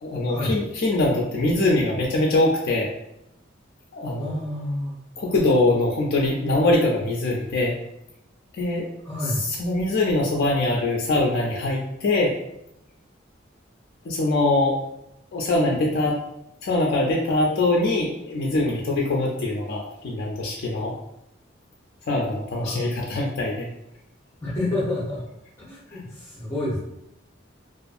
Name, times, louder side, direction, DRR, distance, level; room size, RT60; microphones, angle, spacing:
voice 1, 0.0-2.9 3.9-4.3 5.2-7.7 8.5-8.9 9.3-12.3 14.1-14.8 15.3-16.2 16.6-20.9 22.1-23.7 25.9-26.0, left 2 dB, 55° left, -2 dB, 0.3 m, -23 dB
voice 2, 4.2-5.3 9.0-9.4 22.6-22.9 24.4-25.2 25.6-26.8, left 1 dB, 15° left, -9 dB, 0.7 m, -29 dB
2.5 x 2.4 x 2.4 m, 0.84 s
head